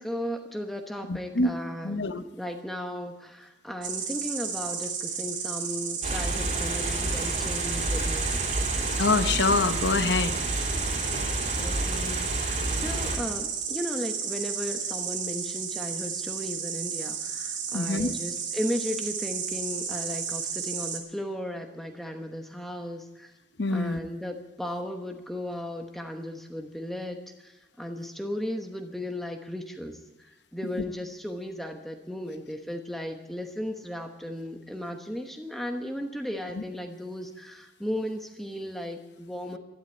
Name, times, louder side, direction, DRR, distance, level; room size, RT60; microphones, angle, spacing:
voice 1, 0.0-8.3 11.6-23.3 23.7-39.6, equal, ahead, 4 dB, 1.0 m, -36 dB
voice 2, 1.1-1.5 1.8-2.2 9.0-10.4 17.7-18.1 23.6-24.0 36.6-36.7, left 3 dB, 65° left, 11 dB, 0.8 m, -25 dB
Insect, 3.8-21.0, right 7 dB, 80° right, 2.4 m, -33 dB
sound 1, 6.0-13.2, right 1 dB, 40° right, 2.9 m, -30 dB
13.0 x 12.0 x 8.5 m, 1.0 s
head